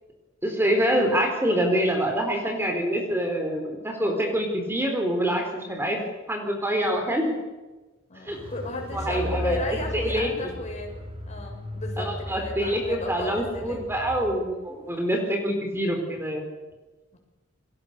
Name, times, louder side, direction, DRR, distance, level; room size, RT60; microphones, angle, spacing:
voice 1, 0.4-6.0 6.3-7.4 8.2-8.4 8.9-9.6 9.9-10.3 12.0-16.4, equal, 10° right, 3 dB, 4.1 m, -26 dB
voice 2, 5.3-5.7 8.1-13.8 15.0-15.4 17.1-17.2, left 2 dB, 35° left, 2 dB, 7.5 m, -35 dB
Car, 8.3-14.5 14.7-14.8, left 1 dB, 30° right, 4.3 m, -36 dB
29.5 x 23.0 x 6.8 m, 1.2 s
head